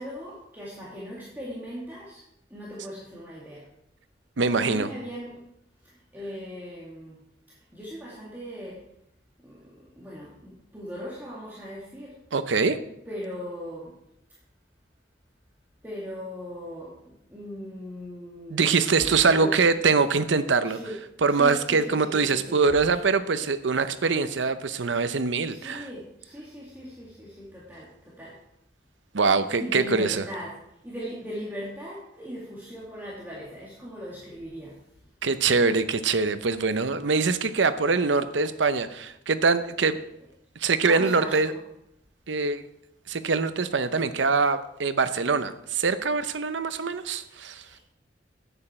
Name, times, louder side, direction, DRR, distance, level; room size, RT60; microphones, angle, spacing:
voice 1, 0.0-2.2 2.5-3.7 4.6-5.4 5.8-7.2 7.5-8.8 9.4-12.1 13.1-13.9 15.8-19.5 20.6-21.0 21.3-23.0 23.3-23.4 25.2-28.4 29.6-30.6 30.8-34.8 40.9-41.6 47.0-47.8, equal, 10° right, -7 dB, 2.2 m, -39 dB
voice 2, 4.4-4.9 12.3-12.8 18.5-20.8 21.2-25.9 29.1-30.2 35.2-40.0 40.6-41.5 42.3-42.6 43.1-47.6, right 4 dB, 90° right, 12 dB, 0.7 m, -23 dB
11.0 x 8.9 x 4.4 m, 0.80 s
head